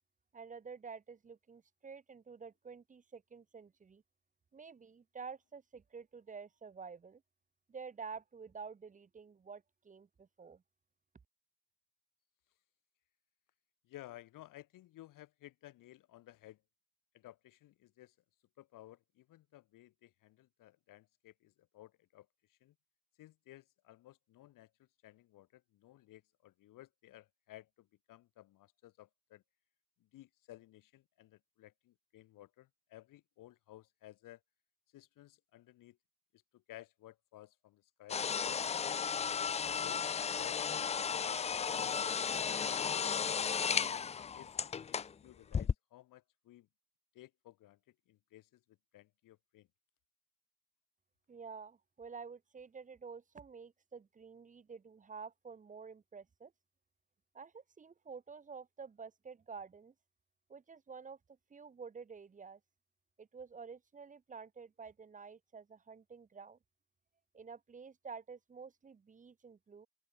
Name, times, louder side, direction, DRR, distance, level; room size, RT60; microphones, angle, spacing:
voice 1, 0.3-4.0 4.5-7.2 7.7-10.6 51.3-56.5 57.3-59.9 60.5-61.2 61.5-62.6 63.2-66.6 67.3-69.9, right 5 dB, 25° right, 4.0 m, -50 dB
voice 2, 13.8-16.6 17.1-18.1 18.6-22.7 23.2-29.4 30.0-34.4 34.9-36.0 36.3-40.0 40.4-40.6 40.9-42.2 43.2-43.9 44.3-46.7 47.1-49.7, left 15 dB, 70° left, 7.9 m, -57 dB
sound 1, 38.1-45.1 45.5-45.7, left 7 dB, 20° left, 0.5 m, -34 dB
open air
cardioid pair, 175°, 33 cm